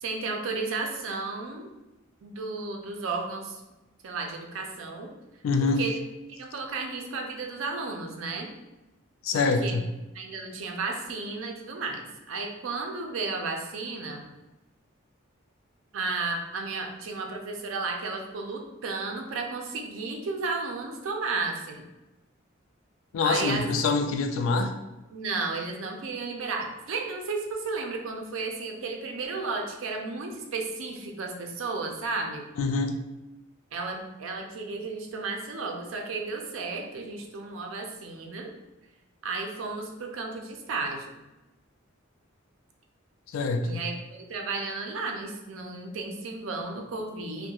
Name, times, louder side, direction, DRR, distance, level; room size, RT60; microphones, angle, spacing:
voice 1, 0.0-1.7 2.2-3.6 4.0-5.1 5.8-6.0 6.3-8.5 9.3-9.8 10.1-14.3 15.9-21.8 23.2-23.6 25.1-32.4 33.7-38.5 39.2-41.1 43.6-47.5, right 3 dB, 85° right, 2 dB, 0.4 m, -33 dB
voice 2, 5.4-5.8 9.2-9.8 23.1-24.7 32.6-32.9 43.3-43.8, left 4 dB, 80° left, 6 dB, 0.3 m, -25 dB
2.3 x 2.1 x 2.8 m, 1.0 s
head